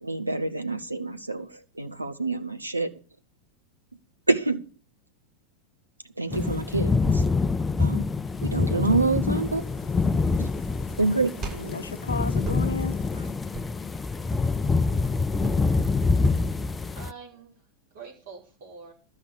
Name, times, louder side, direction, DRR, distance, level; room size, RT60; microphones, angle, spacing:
voice 1, 0.0-2.9 4.3-4.6 6.2-7.2 7.8-8.0 8.4-9.7 10.4-10.5 11.0-11.3 13.2-13.3, right 3 dB, 85° right, 1.0 m, -27 dB
sound 1, 6.3-17.1, left 4 dB, 15° left, 0.5 m, -26 dB
sound 2, 8.2-16.6, right 3 dB, 30° right, 7.1 m, -40 dB
voice 2, 10.1-11.0 11.5-13.3, left 5 dB, 70° left, 0.8 m, -35 dB
voice 3, 15.5-16.0 16.9-18.9, right 5 dB, 55° right, 4.5 m, -46 dB
12.5 x 5.5 x 8.5 m
figure-of-eight pair, 90°, 0 cm